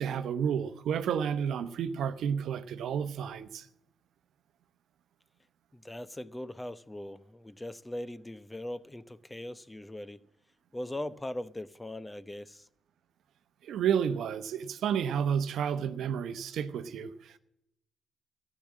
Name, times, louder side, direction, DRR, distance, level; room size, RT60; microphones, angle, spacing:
voice 1, 0.0-3.7 13.6-17.4, right 8 dB, 75° right, 0.8 m, -31 dB
voice 2, 5.7-10.2 10.7-12.7, left 1 dB, 15° left, 0.8 m, -40 dB
13.5 x 10.0 x 7.4 m
supercardioid pair, 50°, 0 cm